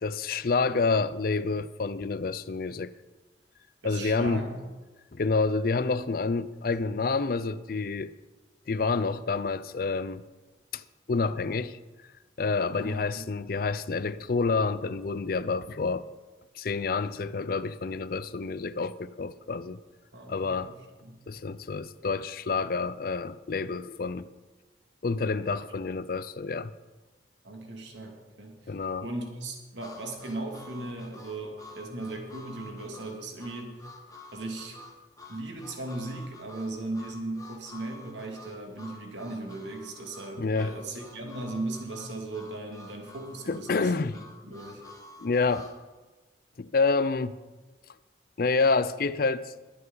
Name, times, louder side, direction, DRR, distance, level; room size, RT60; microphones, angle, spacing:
voice 1, 0.0-2.9 3.8-4.5 5.1-8.1 8.7-10.2 10.7-10.8 11.1-11.8 12.4-16.0 16.5-19.8 20.3-20.7 21.3-24.3 25.0-26.7 28.7-29.1 40.4-40.7 43.5-44.2 45.2-45.7 46.6-47.4 48.4-49.5, left 4 dB, 50° left, 0.5 m, -28 dB
voice 2, 3.8-4.6 7.0-7.1 12.7-13.2 20.1-20.7 21.0-21.2 27.4-28.5 29.0-33.8 34.3-34.8 35.3-44.8, right 2 dB, 85° right, 2.3 m, -37 dB
Harmonica, 29.8-45.8, left 1 dB, 20° left, 1.2 m, -49 dB
20.5 x 8.4 x 3.9 m
head